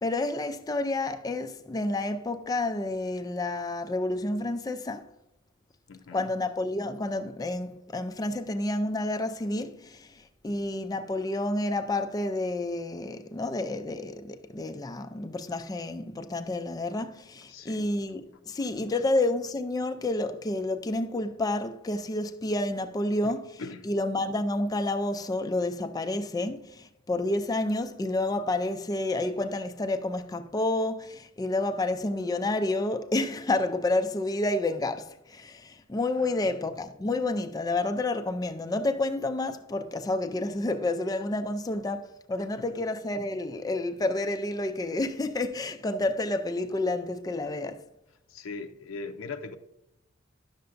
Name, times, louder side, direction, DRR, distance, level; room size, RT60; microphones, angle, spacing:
voice 1, 0.0-5.1 6.1-47.8, left 2 dB, 20° left, 0.3 m, -30 dB
voice 2, 5.9-6.3 17.5-17.9 18.9-19.0 23.2-23.9 36.2-36.5 42.6-42.7 48.3-49.6, left 4 dB, 80° left, 0.5 m, -41 dB
10.5 x 6.7 x 2.5 m
head